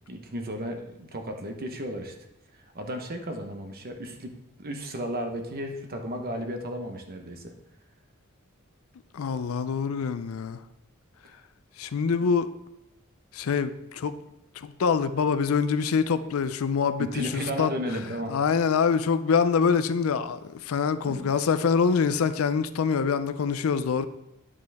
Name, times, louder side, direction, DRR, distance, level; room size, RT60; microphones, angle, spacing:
voice 1, 0.1-2.1 2.7-7.5 17.0-18.4 21.0-21.3, equal, 45° right, 1.0 m, -34 dB
voice 2, 9.1-10.6 11.8-12.5 13.3-14.2 14.6-17.7 18.3-24.1, left 6 dB, 70° left, 0.4 m, -25 dB
9.7 x 5.2 x 3.4 m
head